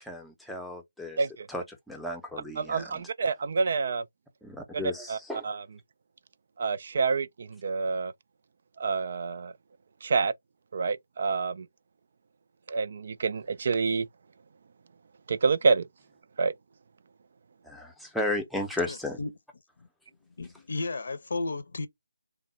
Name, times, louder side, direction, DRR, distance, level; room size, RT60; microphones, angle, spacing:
voice 1, 0.0-1.2 1.5-2.9 4.4-5.5 17.7-19.2, left 1 dB, ahead, 0.6 m, -34 dB
voice 2, 2.6-4.0 4.7-4.8 5.1-5.2 5.4-5.6 6.6-8.1 8.8-9.5 10.0-10.3 10.7-11.7 12.7-14.1 15.3-15.9 16.4-16.5, right 4 dB, 45° right, 0.3 m, -27 dB
voice 3, 18.8-19.4 19.8-19.9 20.4-21.9, left 3 dB, 55° left, 0.7 m, -34 dB
3.5 x 2.1 x 4.2 m
figure-of-eight pair, 150°, 0 cm